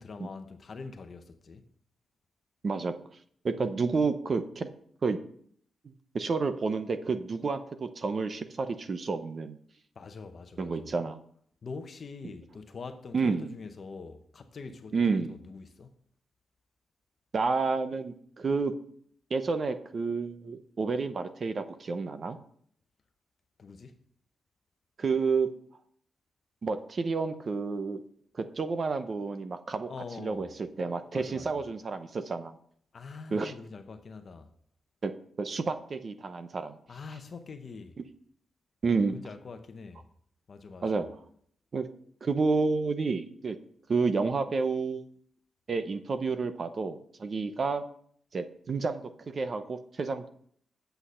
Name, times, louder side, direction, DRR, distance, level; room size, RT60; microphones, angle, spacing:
voice 1, 0.0-1.7 9.9-11.0 11.6-15.9 23.6-24.0 29.9-30.6 31.1-31.7 32.9-34.5 36.9-38.0 39.0-40.0 40.5-41.1, left 4 dB, 40° left, 0.9 m, -44 dB
voice 2, 2.6-2.9 3.4-4.7 5.0-5.2 5.8-9.6 10.6-11.2 13.1-13.5 14.9-15.3 17.3-18.7 19.3-22.4 25.0-25.5 26.6-28.0 28.4-29.9 30.2-30.5 30.8-32.5 33.3-33.5 35.0-36.7 38.8-39.1 40.8-41.0 41.7-41.9 42.2-43.6 43.9-45.0 45.7-47.8 48.3-49.0 49.3-50.3, right 4 dB, 35° right, 0.7 m, -30 dB
8.8 x 8.0 x 5.6 m
wide cardioid pair, 175°, 0 cm